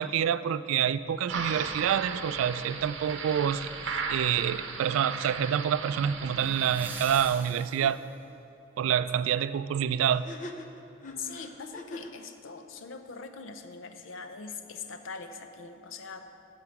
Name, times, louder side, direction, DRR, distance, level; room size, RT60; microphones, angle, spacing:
voice 1, 0.0-3.7 4.1-8.0 8.8-10.3, right 9 dB, 85° right, 15 dB, 0.3 m, -27 dB
sound 1, 1.3-7.3, right 4 dB, 65° right, 0.8 m, -36 dB
sound 2, 3.3-3.7 6.4-8.2 11.1-11.2, right 3 dB, 10° right, 0.6 m, -45 dB
sound 3, 7.4-7.5 7.8-7.9 10.1-12.2, left 2 dB, 40° left, 0.5 m, -43 dB
voice 2, 11.2-16.2, left 5 dB, 75° left, 7 dB, 0.6 m, -42 dB
12.5 x 4.8 x 5.9 m, 2.7 s
head